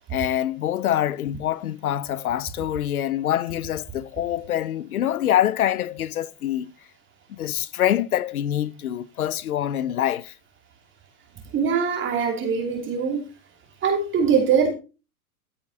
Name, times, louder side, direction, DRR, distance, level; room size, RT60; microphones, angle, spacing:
voice 1, 0.1-6.7 7.3-10.3, left 11 dB, 70° left, 1.0 m, -25 dB
voice 2, 11.5-13.2 13.8-14.7, right 6 dB, 25° right, 2.9 m, -22 dB
14.5 x 8.8 x 2.8 m
figure-of-eight pair, 105°, 45 cm